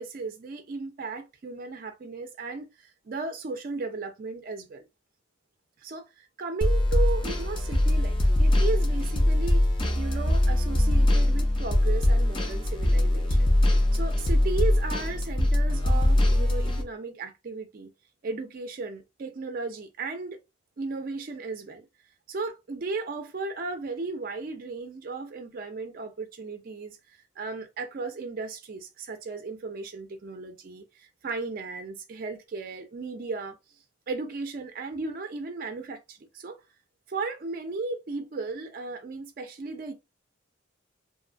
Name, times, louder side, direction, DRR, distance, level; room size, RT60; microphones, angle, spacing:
voice 1, 0.0-4.9 5.8-9.6 9.9-17.9 18.2-20.4 20.8-21.9 22.3-33.6 34.1-36.6 37.1-39.9, right 3 dB, 45° right, 0.4 m, -35 dB
sound 1, 6.6-16.8, left 1 dB, 25° left, 0.4 m, -22 dB
2.5 x 2.3 x 2.4 m
head